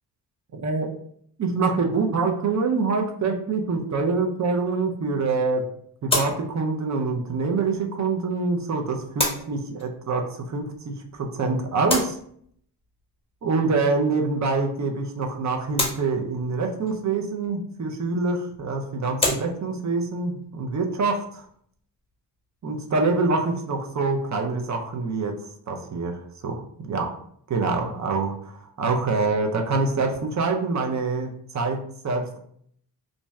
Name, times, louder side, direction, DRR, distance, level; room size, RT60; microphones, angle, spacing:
voice 1, 0.5-1.0 1.4-5.7 6.0-12.2 13.4-21.5 22.6-25.4 25.7-27.2 27.5-32.4, right 3 dB, 40° right, 3 dB, 0.5 m, -25 dB
sound 1, 3.6-22.9, left 1 dB, 15° left, 0.9 m, -34 dB
2.6 x 2.2 x 3.1 m, 0.65 s
cardioid pair, 75°, 43 cm